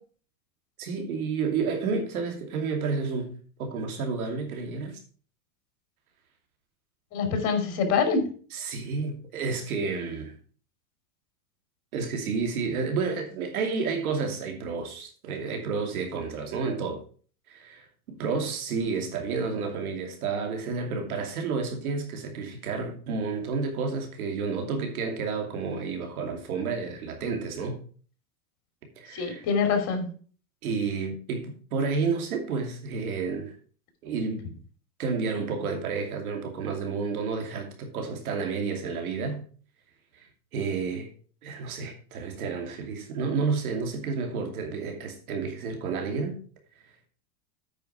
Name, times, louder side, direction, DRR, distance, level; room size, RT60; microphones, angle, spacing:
voice 1, 0.8-3.3 3.6-5.0 7.3-7.4 8.5-10.4 11.9-17.0 17.5-27.8 29.0-29.4 30.6-33.5 34.0-34.4 35.0-39.4 40.1-40.3 40.5-41.1 41.4-46.4, right 5 dB, 85° right, 2.7 m, -30 dB
voice 2, 7.1-8.3 29.1-30.1, left 5 dB, 40° left, 2.7 m, -25 dB
8.8 x 5.2 x 5.7 m
supercardioid pair, 135°, 42 cm